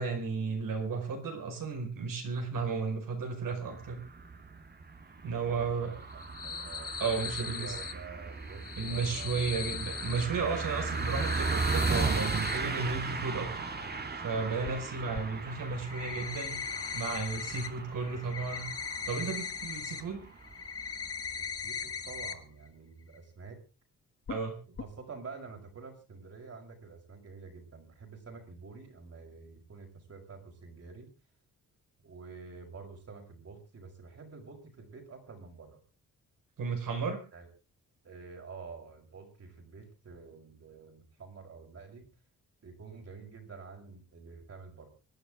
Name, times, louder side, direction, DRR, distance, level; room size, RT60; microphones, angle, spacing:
voice 1, 0.0-4.0 5.2-5.9 7.0-7.7 8.8-13.6 14.2-16.6 16.9-18.7 19.1-20.2 24.3-24.6 36.6-37.2, right 4 dB, 70° right, 3 dB, 5.1 m, -33 dB
sound 1, 3.6-22.2, right 4 dB, 30° right, 1.8 m, -37 dB
voice 2, 5.2-9.5 14.3-14.7 21.4-23.6 24.7-31.1 32.0-35.8 37.3-37.5 38.0-42.1 42.6-44.9, right 4 dB, 45° right, 2 dB, 5.5 m, -48 dB
sound 2, 6.1-7.9 8.5-10.3 10.8-12.6 14.6-14.7 15.1-15.2 15.7-17.7 18.0-20.0 20.4-22.3 22.7-22.8 23.2-23.3 24.3-24.4 24.8-24.9, left 6 dB, 45° left, 1.4 m, -39 dB
25.5 x 10.5 x 3.7 m, 0.32 s
cardioid pair, 115°, 34 cm